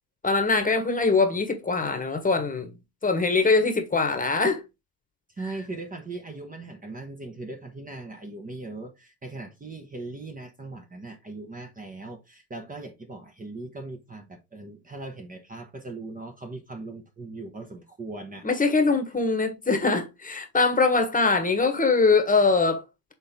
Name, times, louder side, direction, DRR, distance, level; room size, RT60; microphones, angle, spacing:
voice 1, 0.2-2.7 3.0-4.6 18.4-22.9, left 4 dB, 15° left, 1.5 m, -22 dB
voice 2, 5.3-18.5, right 2 dB, 15° right, 1.2 m, -39 dB
6.5 x 3.9 x 3.7 m
hypercardioid pair, 85°, 50 cm